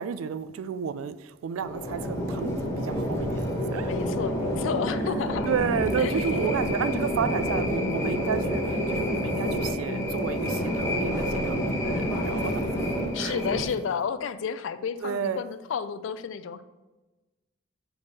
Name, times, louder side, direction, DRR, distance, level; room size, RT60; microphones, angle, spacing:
voice 1, 0.0-3.4 3.7-3.9 5.4-12.7 13.2-13.4 15.0-15.4, right 7 dB, 85° right, 0.3 m, -31 dB
sound 1, 1.6-13.7, equal, 15° left, 1.2 m, -28 dB
voice 2, 3.9-5.5 6.0-6.3 13.1-16.6, left 6 dB, 65° left, 0.3 m, -31 dB
7.0 x 3.4 x 4.0 m
head